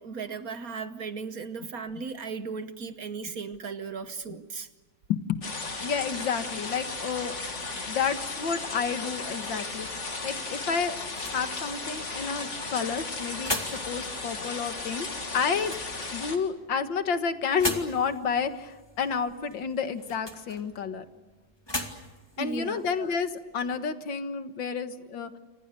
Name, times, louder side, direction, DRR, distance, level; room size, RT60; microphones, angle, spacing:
voice 1, 0.0-4.7 22.4-22.8, right 5 dB, 55° right, 11 dB, 1.3 m, -36 dB
voice 2, 5.1-5.4 5.8-7.4 7.8-15.1 15.3-15.8 16.1-21.1 22.4-25.4, left 6 dB, 70° left, 9 dB, 2.2 m, -30 dB
sound 1, 5.4-16.4, left 3 dB, 35° left, 2.6 m, -35 dB
sound 2, 10.9-23.8, left 1 dB, 10° left, 2.2 m, -40 dB
28.5 x 26.0 x 6.7 m, 1.3 s
omnidirectional pair, 2.1 m